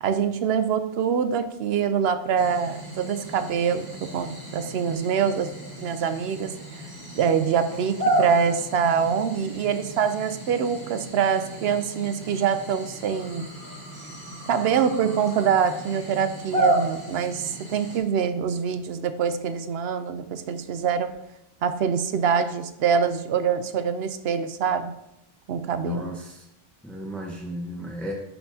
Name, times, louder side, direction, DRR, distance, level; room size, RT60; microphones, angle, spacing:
voice 1, 0.0-5.5 5.8-6.9 7.2-13.5 14.5-21.2 21.6-25.0 25.5-26.1, right 7 dB, 75° right, 11 dB, 0.8 m, -25 dB
sound 1, 2.4-18.0, right 1 dB, 20° right, 1.8 m, -32 dB
voice 2, 25.8-26.4 26.8-28.1, equal, ahead, -1 dB, 0.8 m, -34 dB
11.0 x 4.4 x 2.7 m, 0.85 s
omnidirectional pair, 1.1 m